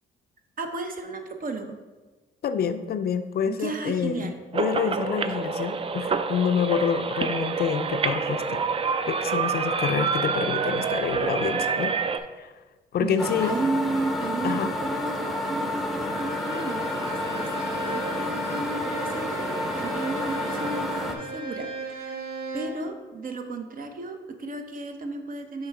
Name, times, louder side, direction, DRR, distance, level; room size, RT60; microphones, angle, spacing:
voice 1, 0.6-1.8 3.4-4.3 13.0-17.5 17.9-19.5 19.8-22.2 22.5-25.7, right 3 dB, 45° right, 6 dB, 0.8 m, -33 dB
voice 2, 2.4-8.6 9.1-11.9 12.4-12.5 12.9-13.5 14.4-14.7, left 7 dB, 50° left, 10 dB, 0.4 m, -27 dB
sound 1, 4.5-12.2, right 5 dB, 30° right, 0.4 m, -27 dB
sound 2, 13.2-21.1, left 1 dB, ahead, 0.7 m, -30 dB
Bowed string instrument, 16.0-22.9, right 3 dB, 80° right, 1.3 m, -37 dB
6.3 x 3.6 x 4.6 m, 1.2 s
cardioid pair, 90°, 20 cm